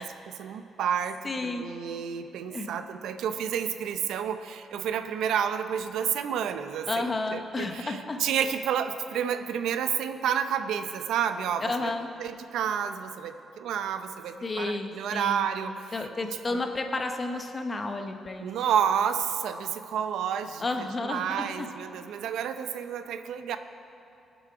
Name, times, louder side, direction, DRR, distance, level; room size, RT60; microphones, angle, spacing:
voice 1, 0.0-11.9 12.2-16.1 16.5-16.6 18.4-23.6, right 8 dB, 85° right, 9 dB, 0.6 m, -30 dB
voice 2, 1.2-1.6 2.5-2.7 6.9-8.2 11.6-12.1 14.4-15.5 15.9-18.5 20.6-21.7, left 2 dB, 20° left, 5 dB, 0.9 m, -31 dB
20.0 x 7.1 x 4.8 m, 2.9 s
cardioid pair, 160°, 0 cm